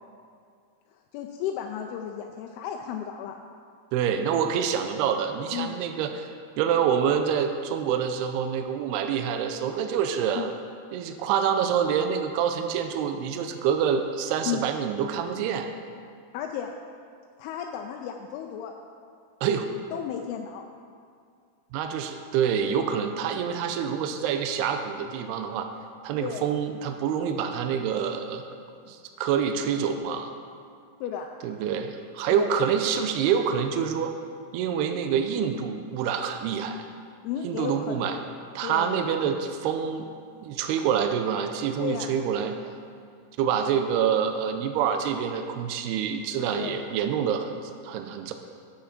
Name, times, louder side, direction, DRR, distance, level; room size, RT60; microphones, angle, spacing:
voice 1, 0.9-3.4 5.5-5.8 10.4-10.5 14.5-14.6 16.3-16.7 17.4-18.7 19.9-20.6 26.2-26.5 31.0-31.3 32.3-32.5 37.2-38.2 38.6-39.1 41.8-42.2 46.5-46.8, left 8 dB, 85° left, 3 dB, 2.4 m, -33 dB
voice 2, 3.9-6.3 6.6-10.5 10.9-15.7 19.4-19.7 21.7-25.7 26.0-28.4 28.9-30.3 31.4-34.1 34.5-36.8 37.4-38.2 38.6-40.1 40.4-42.5 43.4-48.3, right 7 dB, 85° right, 6 dB, 2.6 m, -26 dB
9.6 x 6.4 x 5.9 m, 2.2 s
omnidirectional pair, 4.7 m